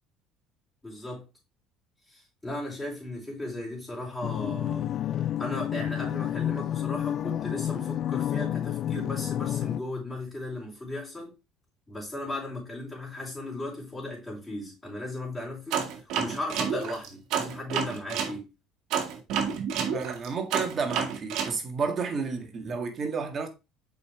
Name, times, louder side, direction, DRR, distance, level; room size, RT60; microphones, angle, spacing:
voice 1, 0.8-1.2 2.1-4.9 5.4-11.3 11.9-18.5, left 1 dB, 10° left, 4.4 m, -36 dB
sound 1, 4.2-9.8, left 11 dB, 50° left, 0.4 m, -30 dB
sound 2, 15.7-18.3 18.9-21.5, right 7 dB, 70° right, 1.7 m, -29 dB
voice 2, 19.9-23.5, right 5 dB, 40° right, 1.7 m, -31 dB
6.8 x 5.3 x 3.4 m
cardioid pair, 110°, 0 cm